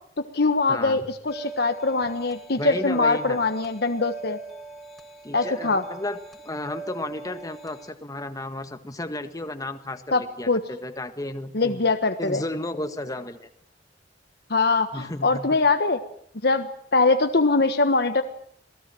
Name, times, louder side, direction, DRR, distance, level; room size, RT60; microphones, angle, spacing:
voice 1, 0.2-4.4 5.3-5.9 10.1-10.6 11.5-12.4 14.5-16.0 16.4-18.2, left 3 dB, 65° left, 7 dB, 1.4 m, -22 dB
voice 2, 0.7-1.0 2.6-3.4 5.2-6.2 6.4-11.8 12.2-13.5 14.9-15.5, left 1 dB, 20° left, 8 dB, 1.7 m, -33 dB
sound 1, 1.3-7.9, right 3 dB, ahead, 3.7 m, -40 dB
27.0 x 19.0 x 7.7 m, 0.64 s
head